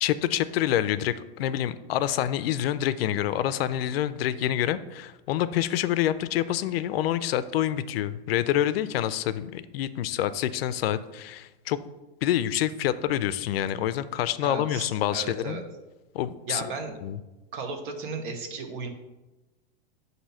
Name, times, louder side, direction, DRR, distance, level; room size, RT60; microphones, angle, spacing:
voice 1, 0.0-11.8 12.2-15.6 16.1-16.6 17.0-17.2, left 11 dB, 80° left, 14 dB, 0.5 m, -27 dB
voice 2, 14.4-15.6 16.5-16.9 17.5-18.9, right 4 dB, 60° right, 5 dB, 1.1 m, -35 dB
7.5 x 2.7 x 5.5 m, 1.1 s
supercardioid pair, 160°, 29 cm